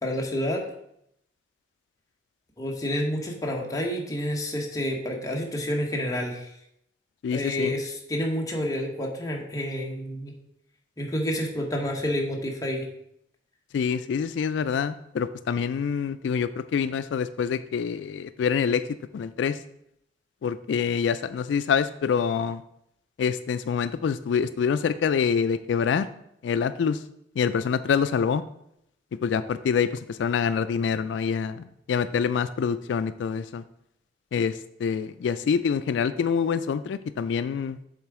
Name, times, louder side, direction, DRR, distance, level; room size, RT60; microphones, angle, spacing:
voice 1, 0.0-0.6 2.6-6.5 7.3-10.3 11.0-12.9, equal, 20° left, -1 dB, 1.2 m, -29 dB
voice 2, 7.2-7.8 13.7-18.8 19.1-19.6 20.4-22.6 23.2-26.1 26.4-27.0 27.4-28.4 29.2-33.6 34.3-37.8, left 6 dB, 90° left, 13 dB, 0.3 m, -26 dB
7.2 x 3.8 x 4.7 m, 0.76 s
head